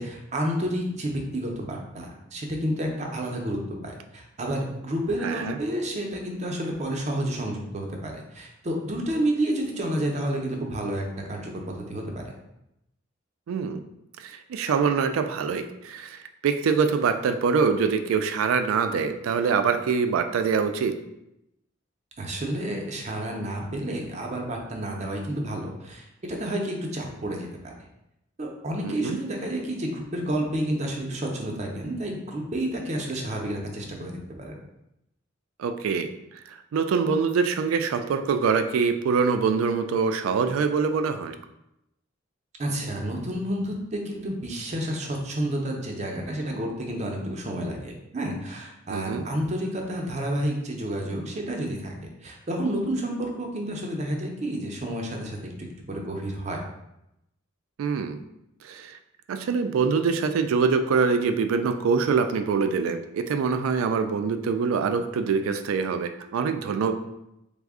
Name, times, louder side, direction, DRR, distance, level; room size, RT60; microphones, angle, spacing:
voice 1, 0.0-12.3 22.2-27.7 28.4-34.6 42.6-56.6, right 1 dB, 35° right, 1 dB, 0.5 m, -30 dB
voice 2, 5.2-5.6 13.5-13.8 14.2-21.0 28.8-29.2 35.6-36.1 36.5-41.4 48.9-49.3 57.8-58.2 58.6-59.0 59.3-66.9, right 5 dB, 90° right, 9 dB, 0.3 m, -24 dB
3.4 x 2.0 x 3.5 m, 0.85 s
head